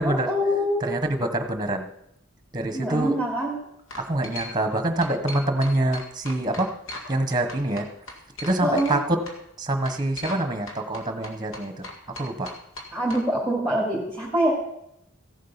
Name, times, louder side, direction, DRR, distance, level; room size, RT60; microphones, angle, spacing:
voice 1, 0.0-0.9 2.7-3.5 8.6-9.0 12.9-14.5, equal, 5° left, -5 dB, 2.7 m, -24 dB
voice 2, 0.8-1.9 2.5-3.1 4.0-6.7 7.1-7.8 8.4-9.2 9.6-11.8 12.2-12.5, right 1 dB, 20° right, 7 dB, 1.2 m, -25 dB
sound 1, 3.1-3.4 3.9-4.8 5.0-7.2 7.5-9.0 9.3-9.4 9.9-10.4 10.7-13.2, left 2 dB, 70° left, 2.0 m, -38 dB
15.5 x 7.6 x 5.7 m, 0.79 s
head